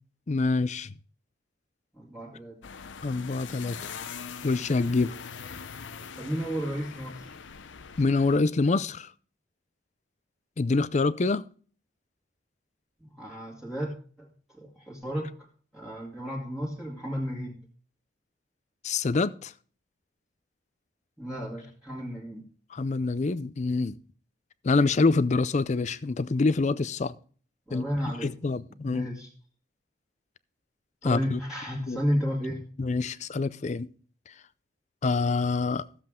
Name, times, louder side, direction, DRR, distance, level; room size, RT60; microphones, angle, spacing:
voice 1, 0.3-0.9 3.0-4.0 4.4-5.1 8.0-9.1 10.6-11.5 18.8-19.5 22.7-24.0 24.6-27.1 27.7-27.8 28.2-29.1 31.0-31.4 31.9-32.0 32.8-33.9 35.0-35.9, left 3 dB, 35° left, 0.5 m, -26 dB
voice 2, 1.9-2.6 6.2-7.4 13.0-13.9 14.2-15.5 15.7-17.6 21.2-22.4 27.7-28.3 28.8-29.3 31.0-32.6, equal, 5° right, 1.9 m, -33 dB
sound 1, 2.6-8.4, left 6 dB, 75° left, 0.7 m, -42 dB
14.0 x 7.6 x 3.6 m
head